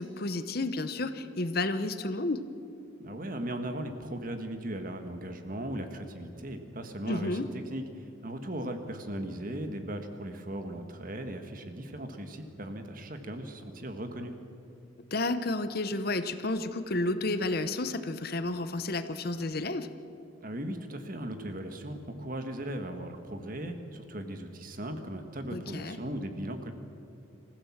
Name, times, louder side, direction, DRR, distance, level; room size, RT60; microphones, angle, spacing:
voice 1, 0.0-2.4 7.1-7.5 15.1-19.9 25.5-26.0, left 2 dB, 50° left, 11 dB, 0.9 m, -31 dB
voice 2, 3.0-7.4 7.7-14.3 20.4-26.7, right 1 dB, 45° right, 7 dB, 1.6 m, -38 dB
25.5 x 15.0 x 7.3 m, 2.6 s
head